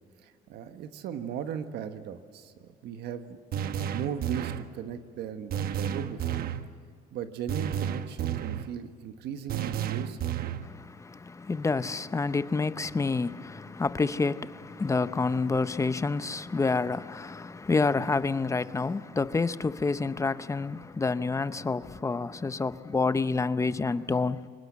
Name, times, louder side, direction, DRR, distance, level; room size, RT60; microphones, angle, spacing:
voice 1, 0.2-3.4 3.9-6.4 7.1-10.3, right 8 dB, 75° right, 1.4 m, -37 dB
sound 1, 3.5-4.7 5.5-6.7 7.5-8.7 9.5-10.7, right 9 dB, 60° right, 1.1 m, -31 dB
voice 2, 10.6-24.5, left 4 dB, 20° left, 0.7 m, -28 dB
24.5 x 20.0 x 7.4 m
cardioid pair, 110°, 17 cm